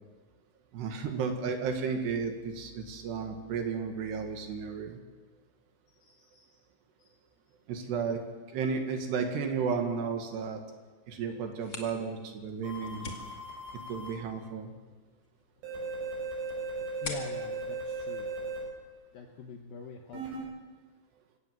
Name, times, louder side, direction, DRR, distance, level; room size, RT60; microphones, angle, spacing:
voice 1, 0.7-5.0 7.7-8.2 8.5-10.6 11.1-13.1 13.9-14.7, right 5 dB, 65° right, 5 dB, 3.6 m, -33 dB
voice 2, 5.9-6.6 7.0-7.2 17.0-18.3 19.1-20.5, left 5 dB, 70° left, 4 dB, 2.3 m, -46 dB
sound 1, 11.4-18.9, left 3 dB, 40° left, 1.9 m, -48 dB
sound 2, 12.6-14.1 15.6-18.6 20.1-20.4, right 3 dB, 80° right, 9.0 m, -37 dB
24.5 x 17.5 x 7.7 m, 1.3 s
omnidirectional pair, 5.7 m